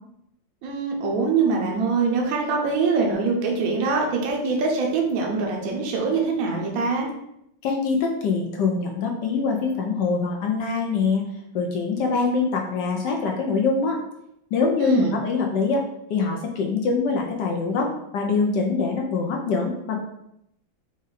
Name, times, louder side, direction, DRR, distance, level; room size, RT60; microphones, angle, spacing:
voice 1, 0.6-7.1 14.8-15.2, right 4 dB, 55° right, 0 dB, 1.0 m, -23 dB
voice 2, 7.6-11.2 11.5-14.0 14.5-15.8 16.1-20.0, left 4 dB, 70° left, 1 dB, 1.1 m, -24 dB
4.9 x 2.6 x 4.0 m, 0.80 s
omnidirectional pair, 2.2 m